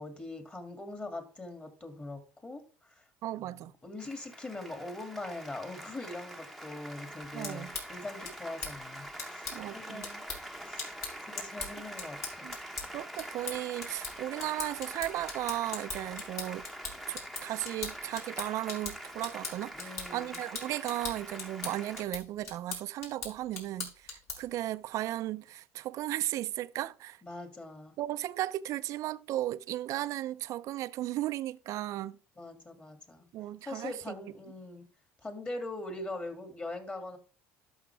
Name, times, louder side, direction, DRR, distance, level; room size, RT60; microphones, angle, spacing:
voice 1, 0.0-3.0 3.3-10.2 10.6-12.5 19.7-20.4 27.2-27.9 32.4-33.3 33.6-34.9 35.2-37.2, left 2 dB, 20° left, 2.4 m, -42 dB
voice 2, 3.2-3.7 7.3-7.8 9.5-10.1 12.4-12.6 12.9-16.6 17.1-27.2 28.0-32.2 33.3-34.1, right 14 dB, 60° right, 0.5 m, -35 dB
Applause, 4.0-22.0, right 1 dB, ahead, 1.0 m, -45 dB
sound 1, 7.2-24.6, left 4 dB, 45° left, 5.3 m, -42 dB
12.0 x 5.8 x 3.4 m
supercardioid pair, 105°, 6 cm